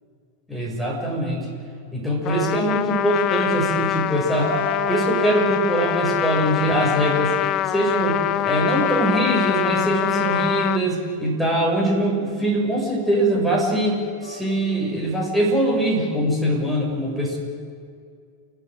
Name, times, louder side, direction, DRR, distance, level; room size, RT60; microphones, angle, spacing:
voice 1, 0.5-1.5 1.9-4.6 4.9-7.3 7.6-17.4, right 1 dB, ahead, -2 dB, 6.7 m, -22 dB
sound 1, 1.8-1.9 4.3-5.5 8.1-9.6 10.1-11.2 13.4-13.7 14.2-15.0 15.5-16.5, right 1 dB, 80° left, 5.2 m, -35 dB
Trumpet, 2.2-10.8, left 13 dB, 35° left, 0.6 m, -24 dB
29.5 x 12.0 x 9.0 m, 2.2 s
figure-of-eight pair, 90°, 0 cm